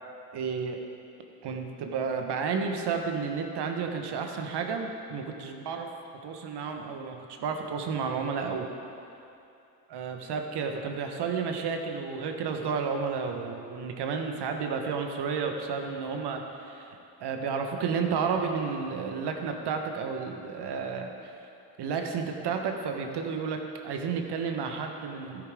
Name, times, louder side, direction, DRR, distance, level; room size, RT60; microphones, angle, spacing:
voice 1, 0.3-0.8 1.4-5.9 6.2-8.7 9.9-21.3 21.8-25.5, right 5 dB, 60° right, 4 dB, 1.4 m, -32 dB
13.0 x 10.0 x 3.7 m, 2.7 s
hypercardioid pair, 65°, 45 cm